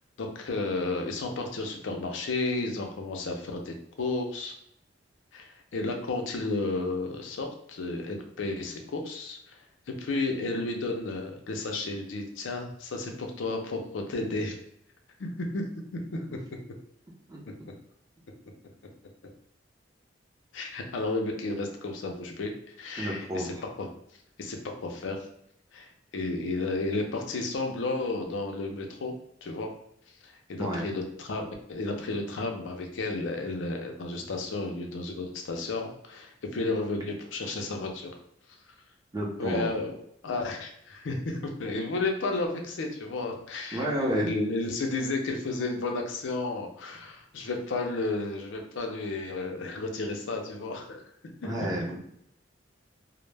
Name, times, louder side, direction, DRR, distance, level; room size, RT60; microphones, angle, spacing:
voice 1, 0.2-4.5 5.3-14.6 15.2-15.7 16.1-16.3 17.6-17.7 20.5-23.9 24.4-25.3 25.7-29.1 29.4-29.7 30.2-38.1 39.4-39.9 40.2-51.0 51.4-51.5, left 2 dB, 85° left, 3 dB, 0.5 m, -32 dB
voice 2, 17.3-17.7 23.0-23.5 30.6-30.8 39.1-39.7 43.7-44.3 51.4-52.0, right 1 dB, 20° right, -3 dB, 0.6 m, -31 dB
2.1 x 2.0 x 3.2 m, 0.72 s
head